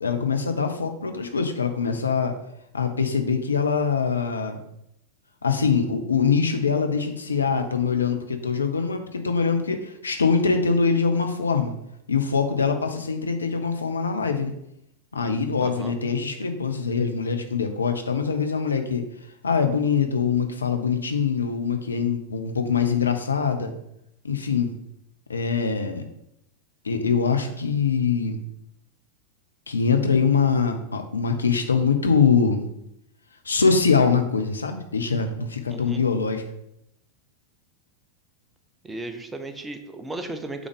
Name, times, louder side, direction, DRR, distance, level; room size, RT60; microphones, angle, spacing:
voice 1, 0.0-2.4 2.7-4.6 5.4-11.7 12.1-14.5 15.1-19.1 19.4-23.7 24.2-24.7 25.3-26.0 26.8-28.4 29.7-32.6 33.4-36.4, left 5 dB, 75° left, 6 dB, 0.8 m, -23 dB
voice 2, 15.6-16.0 35.7-36.0 38.8-40.7, right 2 dB, 10° right, 7 dB, 0.7 m, -35 dB
6.2 x 4.0 x 5.2 m, 0.80 s
figure-of-eight pair, 90°, 0 cm